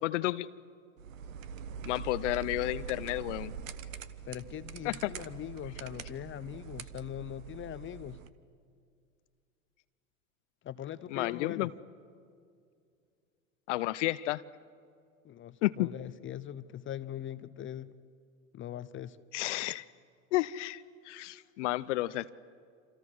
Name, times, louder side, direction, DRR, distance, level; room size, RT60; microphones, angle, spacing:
voice 1, 0.0-0.5 1.8-3.5 4.8-5.1 11.1-11.7 13.7-14.4 15.6-15.9 19.3-19.8 20.3-22.3, left 17 dB, 60° left, 15 dB, 0.7 m, -31 dB
sound 1, 1.0-8.3, right 7 dB, 75° right, 1.2 m, -43 dB
voice 2, 4.2-8.2 10.6-11.7 15.2-17.9 18.5-19.2, left 11 dB, 30° left, 14 dB, 0.9 m, -41 dB
27.5 x 27.0 x 6.3 m, 2.3 s
hypercardioid pair, 90°, 40 cm